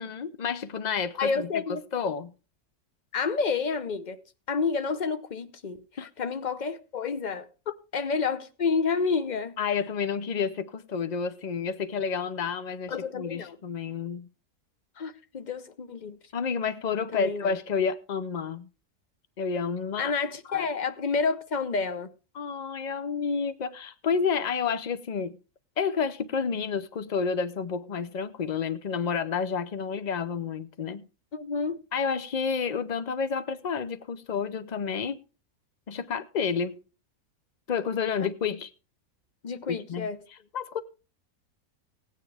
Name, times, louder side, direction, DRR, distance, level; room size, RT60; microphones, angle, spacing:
voice 1, 0.0-1.6 1.9-2.3 6.0-6.1 9.6-14.3 16.3-18.7 19.4-20.1 20.5-20.7 22.3-25.4 25.8-31.0 31.9-35.2 35.9-36.8 37.7-38.7 39.7-40.1 40.5-40.8, left 6 dB, 80° left, 0.4 m, -30 dB
voice 2, 1.2-1.8 3.1-4.2 4.5-7.5 7.9-9.6 12.9-13.6 15.0-16.2 17.1-17.5 20.0-22.1 31.3-31.8 39.4-40.2, left 5 dB, 40° left, 0.7 m, -29 dB
17.0 x 9.2 x 3.4 m
omnidirectional pair, 1.6 m